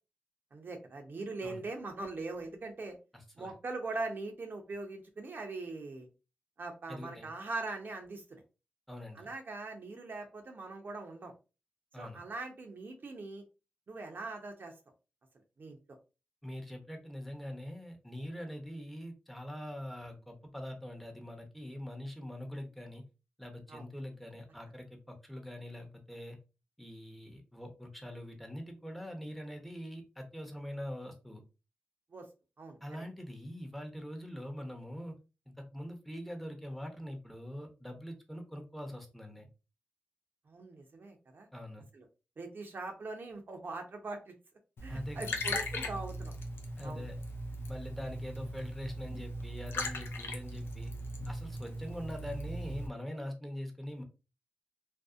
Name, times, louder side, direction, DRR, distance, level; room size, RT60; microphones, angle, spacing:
voice 1, 0.5-3.0 3.4-6.1 6.6-8.4 9.1-11.3 12.0-13.4 13.9-14.7 15.6-15.8 23.7-23.9 32.1-32.3 32.6-33.0 40.5-41.5 41.9-42.1 42.4-44.4 44.8-46.3 46.8-47.1, right 3 dB, 60° right, 4 dB, 0.6 m, -41 dB
voice 2, 3.1-3.5 6.9-7.3 8.9-9.3 11.9-12.2 16.4-23.0 23.4-26.4 26.8-31.4 32.8-35.1 35.7-39.5 41.5-41.8 44.9-45.4 46.8-47.1 47.7-50.9 51.3-54.0, equal, 5° left, 3 dB, 0.8 m, -43 dB
Liquid, 44.8-52.9, left 1 dB, 75° left, 0.5 m, -39 dB
2.6 x 2.0 x 2.4 m, 0.30 s
cardioid pair, 45°, 4 cm